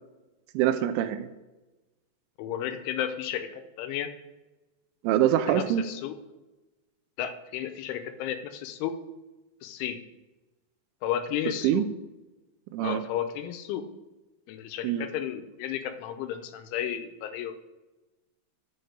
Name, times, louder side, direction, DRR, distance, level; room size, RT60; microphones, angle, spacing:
voice 1, 0.5-1.3 5.0-5.8 11.6-11.9 12.7-13.0 14.8-15.1, right 11 dB, 85° right, 10 dB, 3.0 m, -24 dB
voice 2, 2.4-4.1 5.5-6.1 7.2-9.0 9.6-10.0 11.0-11.9 12.8-13.8 14.5-17.5, left 10 dB, 80° left, 9 dB, 3.1 m, -33 dB
8.0 x 5.6 x 6.5 m, 1.1 s
omnidirectional pair, 5.6 m